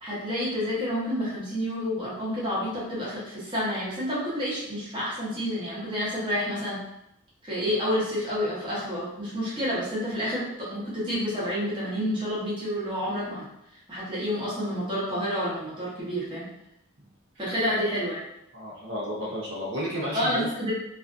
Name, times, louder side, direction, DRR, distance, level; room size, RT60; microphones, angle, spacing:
voice 1, 0.0-6.8 7.4-13.5 13.9-16.5 17.4-18.2 20.1-20.7, equal, 25° right, -8 dB, 0.8 m, -29 dB
voice 2, 18.5-20.4, equal, 55° right, -6 dB, 0.7 m, -32 dB
2.5 x 2.3 x 2.4 m, 0.81 s
head